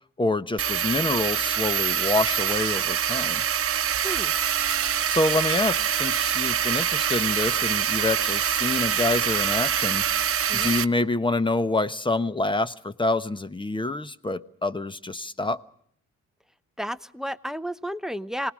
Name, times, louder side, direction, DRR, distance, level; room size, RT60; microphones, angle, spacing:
voice 1, 0.2-3.4 4.9-10.0 10.5-15.6, left 2 dB, 15° left, 14 dB, 1.1 m, -27 dB
sound 1, 0.6-10.8, right 9 dB, 50° right, 1.0 m, -25 dB
voice 2, 4.0-4.3 10.5-10.8 16.8-18.5, equal, ahead, 16 dB, 0.8 m, -32 dB
26.5 x 19.5 x 6.3 m, 0.66 s
cardioid pair, 90°, 30 cm